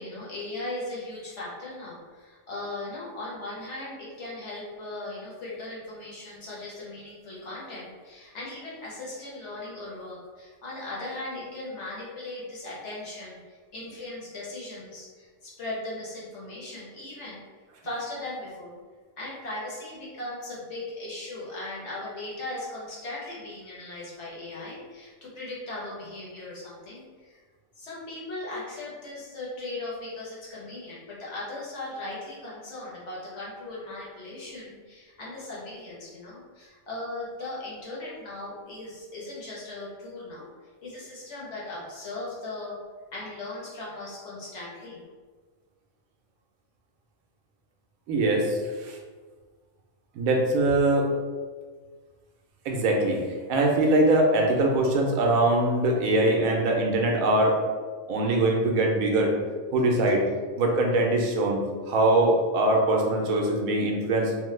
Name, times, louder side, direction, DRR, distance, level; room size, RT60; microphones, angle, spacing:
voice 1, 0.0-17.4 17.8-18.8 19.2-27.4 27.8-42.8 43.1-45.0 60.1-60.2, left 2 dB, 60° left, -6 dB, 1.1 m, -38 dB
voice 2, 48.1-49.0 50.2-51.1 52.7-53.2 53.5-57.6 58.1-59.3 59.7-60.2 60.6-61.6 61.9-64.3, right 2 dB, 80° right, 1 dB, 1.0 m, -22 dB
3.2 x 2.1 x 3.1 m, 1.5 s
omnidirectional pair, 1.5 m